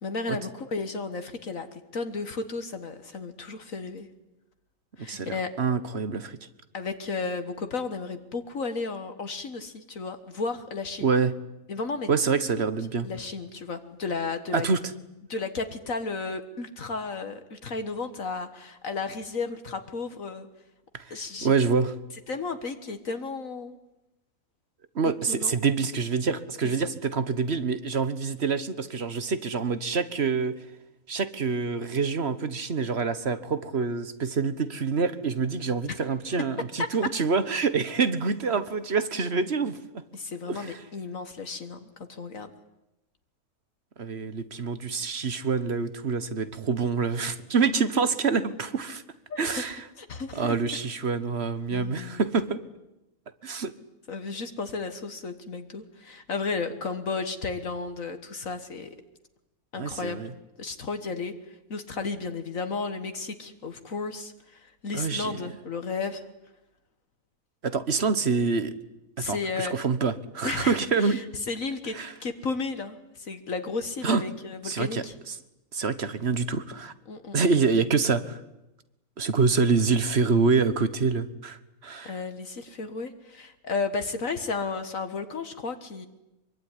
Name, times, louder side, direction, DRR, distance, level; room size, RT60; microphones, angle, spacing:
voice 1, 0.0-4.1 5.0-5.5 6.7-11.1 11.7-12.1 13.0-14.7 15.3-20.5 21.1-21.5 22.3-23.7 25.3-25.6 26.6-26.7 36.3-36.4 36.8-36.9 40.1-42.5 49.3-49.6 50.0-50.6 51.7-52.2 54.1-59.0 59.7-60.2 60.6-66.2 69.2-69.8 70.4-75.1 77.1-77.4 82.1-86.1, left 4 dB, 65° left, 8 dB, 1.9 m, -33 dB
voice 2, 5.0-6.4 11.0-11.3 12.1-13.1 14.5-14.8 20.9-21.1 21.4-21.9 24.9-30.6 31.1-39.8 40.5-40.8 44.0-49.0 49.4-49.8 50.3-52.6 53.4-53.7 59.8-60.3 64.9-65.4 67.6-68.7 69.2-71.2 71.9-72.1 74.0-74.2 74.6-75.0 75.7-76.9 77.3-78.4 79.2-82.1, right 5 dB, 45° right, 13 dB, 1.5 m, -26 dB
24.5 x 23.5 x 10.0 m, 0.93 s
omnidirectional pair, 1.5 m